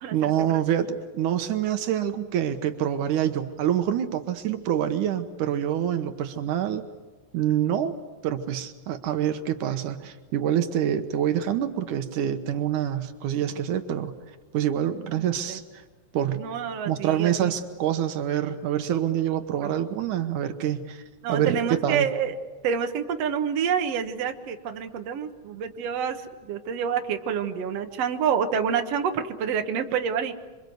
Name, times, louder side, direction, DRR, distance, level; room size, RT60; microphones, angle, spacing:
voice 1, 0.1-6.8 7.3-7.9 8.2-14.1 14.5-15.6 16.1-16.4 16.9-21.0 21.3-22.1, right 10 dB, 80° right, 8 dB, 2.6 m, -26 dB
voice 2, 15.1-15.6 16.3-17.5 19.6-19.7 21.2-22.3 22.6-30.3, right 7 dB, 60° right, 5 dB, 2.3 m, -28 dB
27.0 x 24.5 x 7.9 m, 1.3 s
omnidirectional pair, 3.6 m